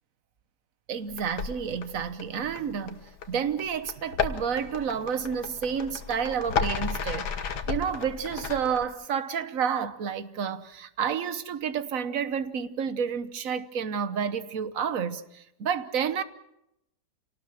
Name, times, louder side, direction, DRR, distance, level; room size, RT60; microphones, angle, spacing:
voice 1, 0.9-3.0 3.3-7.3 7.7-16.2, right 7 dB, 55° right, 1.4 m, -30 dB
sound 1, 1.1-8.8, left 6 dB, 70° left, 1.9 m, -34 dB
28.0 x 18.5 x 6.4 m
omnidirectional pair, 1.8 m